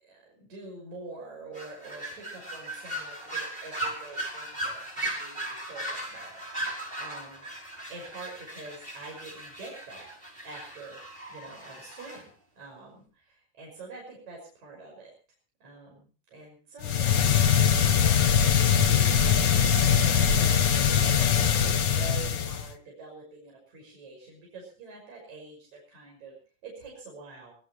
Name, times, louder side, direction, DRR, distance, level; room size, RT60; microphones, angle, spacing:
voice 1, 0.0-6.4 6.7-7.5 7.9-10.1 10.4-11.0 11.3-12.3 12.6-15.1 15.6-26.4 26.6-27.5, right 3 dB, 60° right, -2 dB, 7.2 m, -46 dB
sound 1, 1.5-12.2, right 1 dB, 15° right, 6.0 m, -37 dB
sound 2, 16.8-22.7, left 8 dB, 80° left, 0.9 m, -22 dB
23.0 x 19.0 x 3.1 m, 0.39 s
omnidirectional pair, 3.7 m